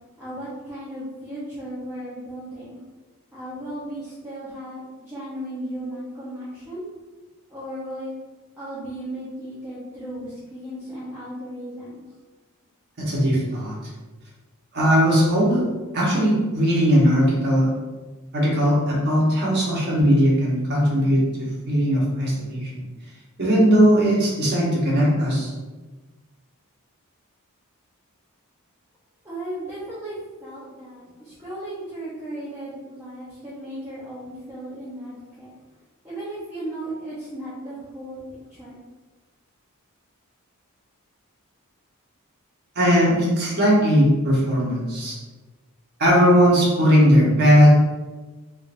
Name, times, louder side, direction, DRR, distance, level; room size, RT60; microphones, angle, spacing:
voice 1, 0.2-2.8 3.3-6.9 7.5-8.1 8.6-12.1 29.2-35.5 36.0-38.8, right 1 dB, 10° right, -12 dB, 0.8 m, -35 dB
voice 2, 13.0-13.7 14.7-15.6 15.9-17.7 18.3-22.8 23.4-25.5 42.7-45.1 46.0-47.7, equal, 50° right, -5 dB, 1.1 m, -18 dB
3.4 x 3.4 x 2.6 m, 1.2 s
head